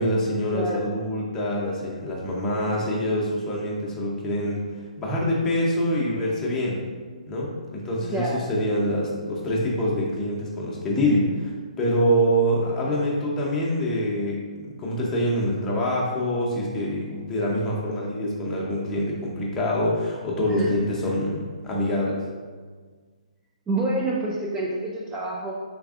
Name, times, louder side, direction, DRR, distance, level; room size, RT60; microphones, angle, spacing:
voice 1, 0.0-4.7 5.0-6.8 7.3-22.2, equal, 15° left, -5 dB, 0.7 m, -25 dB
voice 2, 0.5-0.9 8.0-8.4 20.4-20.7 21.0-21.1 23.7-25.5, right 2 dB, 15° right, -4 dB, 0.3 m, -27 dB
3.5 x 3.2 x 2.4 m, 1.5 s
figure-of-eight pair, 135°, 4 cm